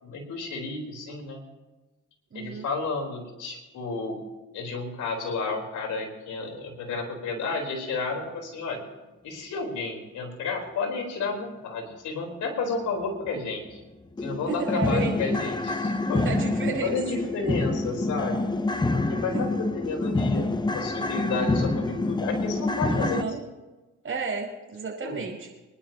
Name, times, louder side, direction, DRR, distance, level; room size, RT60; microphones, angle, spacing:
voice 1, 0.0-1.4 2.3-4.2 4.5-8.8 9.2-13.8 14.2-16.3 16.8-18.5 18.9-23.3 25.0-25.2, left 3 dB, 75° left, 0 dB, 4.2 m, -31 dB
voice 2, 2.3-2.7 14.5-15.2 16.2-16.9 18.8-18.9 19.3-19.5 22.9-23.4 24.0-25.5, right 5 dB, 45° right, 0 dB, 4.9 m, -32 dB
sound 1, 13.2-13.3 13.7-13.8 14.2-23.2, left 2 dB, 15° left, 0.8 m, -27 dB
25.5 x 11.5 x 2.9 m, 1.1 s
cardioid pair, 90°, 30 cm